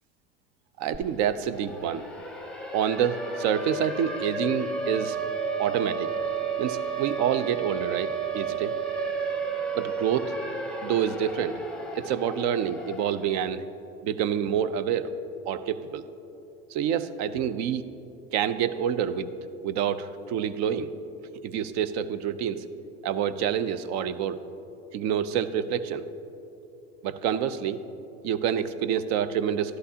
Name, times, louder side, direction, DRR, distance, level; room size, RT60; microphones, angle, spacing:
voice 1, 0.8-2.1 2.7-5.2 5.6-6.1 6.6-8.8 9.7-10.3 10.8-11.6 12.0-13.6 14.0-15.1 15.5-16.0 16.7-17.9 18.3-19.3 19.6-20.9 21.4-22.6 23.0-24.4 24.9-26.1 27.0-27.8 28.2-29.8, right 8 dB, 60° right, 13 dB, 0.6 m, -27 dB
Siren, 0.9-1.0 1.3-13.4, right 4 dB, ahead, 0.8 m, -32 dB
12.5 x 11.5 x 2.8 m, 2.9 s
supercardioid pair, 95°, 31 cm